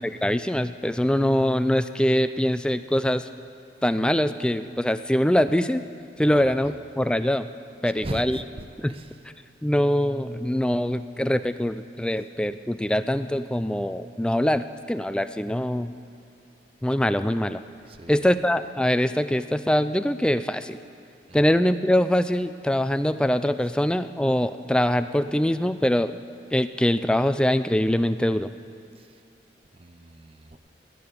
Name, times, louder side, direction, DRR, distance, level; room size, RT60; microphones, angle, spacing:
voice 1, 0.0-3.3 3.8-5.8 6.2-7.5 7.8-8.4 8.8-8.9 9.6-15.9 16.8-17.6 18.1-20.8 21.3-26.2 26.5-28.5, left 1 dB, 5° left, 11 dB, 0.3 m, -23 dB
voice 2, 6.3-6.7 8.0-9.2 17.9-18.3 21.3-21.4 29.0-29.2 29.8-30.6, right 1 dB, 35° right, 10 dB, 0.6 m, -39 dB
19.5 x 6.8 x 9.5 m, 2.4 s
head